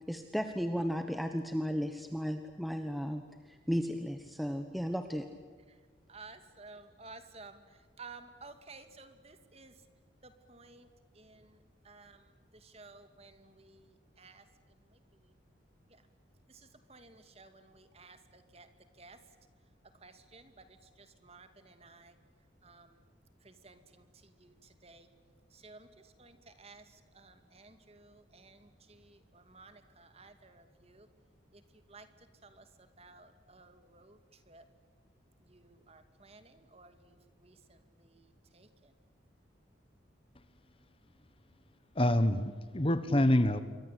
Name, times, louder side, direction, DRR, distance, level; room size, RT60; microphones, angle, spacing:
voice 1, 0.1-5.3, equal, ahead, 6 dB, 1.2 m, -35 dB
voice 2, 6.1-9.7 10.2-10.9 11.1-11.6 11.8-14.4 14.9-15.0 15.9-16.0 16.5-18.7 19.0-19.2 20.0-22.2 22.6-23.0 23.4-25.1 25.5-31.1 31.5-31.6 31.9-32.1 32.4-34.6 35.5-38.9, right 3 dB, 30° right, 9 dB, 2.4 m, -55 dB
voice 3, 42.0-43.6, left 1 dB, 30° left, 12 dB, 1.3 m, -26 dB
28.0 x 24.0 x 8.4 m, 1.5 s
head